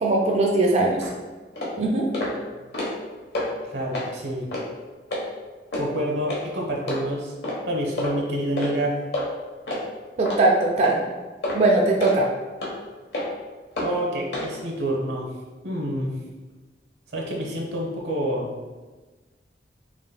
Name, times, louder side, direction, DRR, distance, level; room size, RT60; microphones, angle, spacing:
voice 1, 0.0-1.0 1.8-2.1 10.2-11.0 11.5-12.3, right 2 dB, 40° right, -2 dB, 0.4 m, -20 dB
sound 1, 1.0-1.1 1.6-1.7 2.1-2.3 2.6-3.0 3.3-3.5 3.9-4.1 4.5-4.6 5.1-5.2 5.7-5.9 6.3-6.4 6.9-7.0 7.4-7.6 8.0-8.1 8.6-8.7 9.1-9.3 9.7-9.8 10.3-10.4 10.8-11.0 11.4-11.6 12.0-12.2 12.6-12.7 13.1-13.3 13.8-13.9 14.3-14.5, left 1 dB, 70° left, 1.0 m, -28 dB
voice 2, 3.7-4.5 5.7-7.3 7.7-9.0 13.8-15.3 15.6-16.2 17.1-18.5, right 1 dB, 85° right, -1 dB, 0.9 m, -27 dB
5.1 x 3.1 x 2.2 m, 1.3 s
head